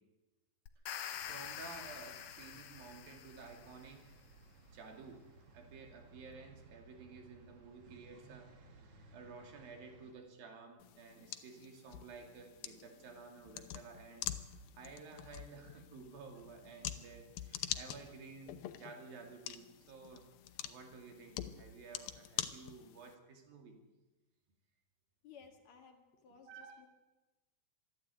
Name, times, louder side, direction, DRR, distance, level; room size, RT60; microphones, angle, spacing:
sound 1, 0.7-3.8, left 10 dB, 70° left, 2.5 m, -46 dB
voice 1, 0.9-4.1 4.7-5.3 5.5-20.3 20.6-23.7 26.4-26.8, right 4 dB, 75° right, 3 dB, 4.4 m, -53 dB
sound 2, 1.1-10.1, right 3 dB, 45° right, 2.6 m, -60 dB
sound 3, 10.8-23.1, left 12 dB, 85° left, 2.8 m, -46 dB
voice 2, 25.2-26.9, left 6 dB, 55° left, 5 dB, 2.7 m, -58 dB
25.5 x 11.0 x 9.4 m, 1.1 s
omnidirectional pair, 4.1 m